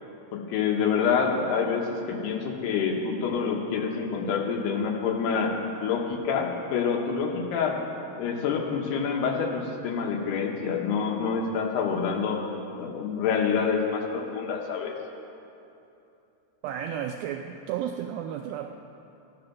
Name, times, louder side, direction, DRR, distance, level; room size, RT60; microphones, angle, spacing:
voice 1, 0.3-5.5 5.8-7.8 8.2-12.5 12.8-14.9, left 6 dB, 80° left, 2 dB, 3.1 m, -27 dB
voice 2, 16.6-18.7, right 9 dB, 85° right, 4 dB, 2.1 m, -33 dB
15.0 x 10.5 x 6.0 m, 2.8 s
omnidirectional pair, 4.7 m